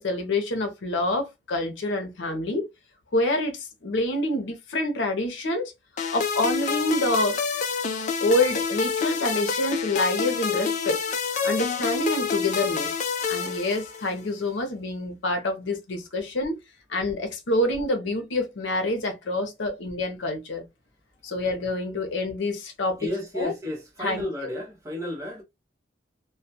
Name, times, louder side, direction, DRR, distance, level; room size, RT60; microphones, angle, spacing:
voice 1, 0.0-2.7 3.1-5.7 6.1-7.4 8.2-11.0 11.4-12.9 13.3-16.6 16.9-20.6 21.2-23.0 23.3-23.5 24.0-24.3, left 1 dB, 80° left, 0.7 m, -27 dB
sound 1, 6.0-14.2, left 6 dB, 40° left, 0.3 m, -28 dB
voice 2, 23.0-25.4, left 1 dB, 15° right, 0.6 m, -32 dB
2.2 x 2.1 x 2.7 m
head